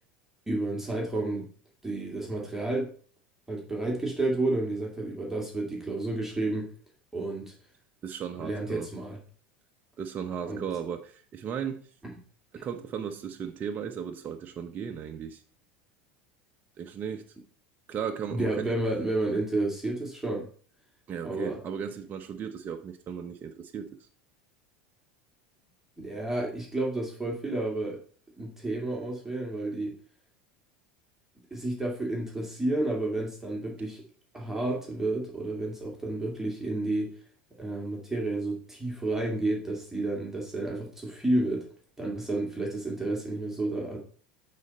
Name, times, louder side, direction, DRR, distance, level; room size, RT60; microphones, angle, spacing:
voice 1, 0.5-1.5 1.8-2.9 3.5-6.7 7.1-7.5 8.4-9.2 10.5-10.6 12.0-12.2 18.3-20.5 21.2-21.6 26.0-28.0 28.4-29.9 31.5-34.0 34.3-37.1 37.6-41.7 42.0-44.0, right 2 dB, 5° right, 2.4 m, -31 dB
voice 2, 8.0-8.9 10.0-11.9 12.5-15.4 16.8-17.3 17.9-18.7 21.1-24.0, right 7 dB, 35° right, 0.8 m, -36 dB
8.6 x 4.2 x 5.3 m
hypercardioid pair, 90°, 5 cm